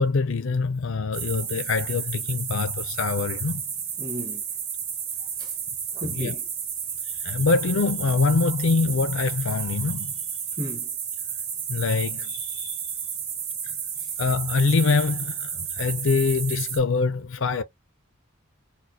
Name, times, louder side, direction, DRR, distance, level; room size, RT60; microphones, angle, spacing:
voice 1, 0.0-3.6 6.0-6.3 7.2-10.1 11.7-12.8 13.6-13.8 14.2-17.6, left 4 dB, 70° left, 0.6 m, -24 dB
sound 1, 1.1-16.8, right 7 dB, 50° right, 1.4 m, -32 dB
voice 2, 4.0-4.4 5.4-5.5 5.9-6.5 10.6-10.9 14.0-14.1, equal, 20° right, 1.2 m, -35 dB
4.2 x 2.3 x 2.8 m
head